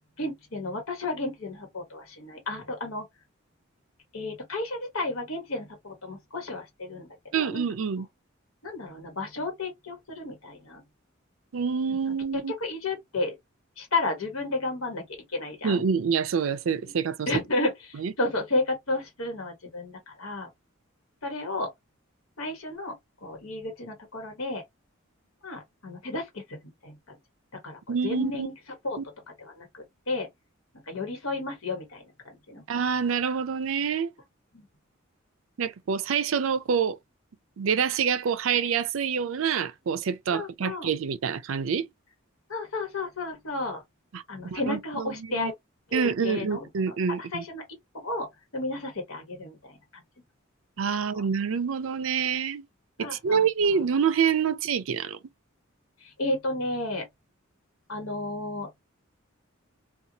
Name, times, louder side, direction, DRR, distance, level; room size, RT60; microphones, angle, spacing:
voice 1, 0.2-3.0 4.1-7.1 7.3-7.6 8.6-10.8 11.9-12.0 12.3-13.4 13.8-15.0 15.3-15.8 16.9-17.0 17.3-20.5 21.2-21.7 22.4-22.9 23.2-24.6 25.4-27.2 27.6-28.5 28.8-29.0 29.4-30.3 30.9-32.6 34.5-34.7 40.3-40.9 42.5-43.8 44.3-45.5 45.9-47.6 47.9-48.3 48.5-50.0 51.1-51.2 53.0-53.4 53.7-53.8 56.0-57.0 57.9-58.7, left 2 dB, 85° left, 1.2 m, -32 dB
voice 2, 7.3-8.1 11.5-12.5 15.6-17.3 18.0-18.1 27.9-28.5 29.0-29.1 32.7-34.1 35.6-37.0 37.6-41.9 44.1-45.5 45.9-47.4 50.8-52.6 53.0-55.2, right 6 dB, 70° right, 0.4 m, -27 dB
2.7 x 2.3 x 2.6 m
head